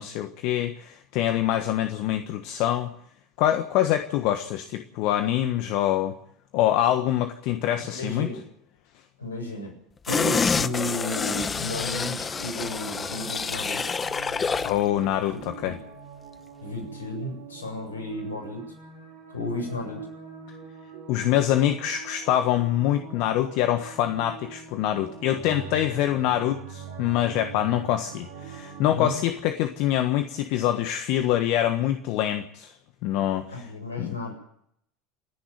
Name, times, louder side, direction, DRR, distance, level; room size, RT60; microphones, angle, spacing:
voice 1, 0.0-2.9 3.4-6.2 6.5-8.3 14.6-15.8 21.1-32.7 33.0-33.7 34.0-34.2, left 12 dB, 60° left, 8 dB, 1.4 m, -25 dB
voice 2, 7.9-8.4 9.2-9.7 10.1-13.8 15.3-15.7 16.6-18.6 19.3-20.1 25.4-25.6 28.9-29.2 33.5-34.3, left 1 dB, 85° left, 3 dB, 7.8 m, -33 dB
sound 1, 10.1-14.8 15.2-15.3, left 5 dB, 25° left, 0.9 m, -28 dB
sound 2, 12.2-29.2, right 6 dB, 70° right, 5.1 m, -43 dB
29.0 x 10.5 x 9.2 m, 0.70 s
hypercardioid pair, 70°, 0 cm